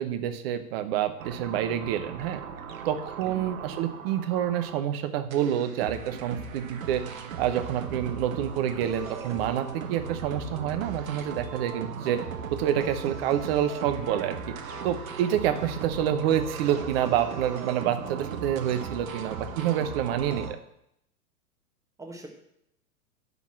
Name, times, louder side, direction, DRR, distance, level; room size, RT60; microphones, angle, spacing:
voice 1, 0.0-2.4 2.8-7.1 7.4-12.2 12.5-14.4 14.8-20.6, right 10 dB, 40° right, 9 dB, 1.0 m, -28 dB
sound 1, 1.2-4.9 5.3-20.5, right 5 dB, 60° right, 1.2 m, -38 dB
voice 2, 3.2-3.5 15.4-15.7 22.0-22.3, right 1 dB, 5° right, 1 dB, 1.5 m, -43 dB
11.0 x 4.0 x 7.5 m, 0.76 s
figure-of-eight pair, 100°, 46 cm